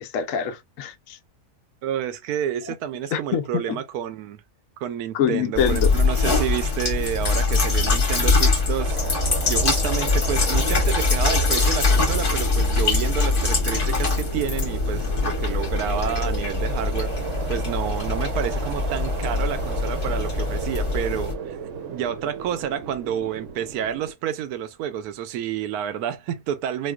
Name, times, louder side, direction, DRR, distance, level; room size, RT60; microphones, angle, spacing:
voice 1, 0.0-1.2 3.1-3.8 5.1-5.9, left 8 dB, 70° left, 0.9 m, -25 dB
voice 2, 1.8-4.4 4.8-9.0 9.5-21.6 21.9-26.9, right 9 dB, 85° right, 1.1 m, -29 dB
sound 1, 5.5-21.3, left 3 dB, 40° left, 1.0 m, -23 dB
sound 2, 8.8-24.1, right 7 dB, 65° right, 0.9 m, -35 dB
4.3 x 2.2 x 2.2 m
omnidirectional pair, 1.6 m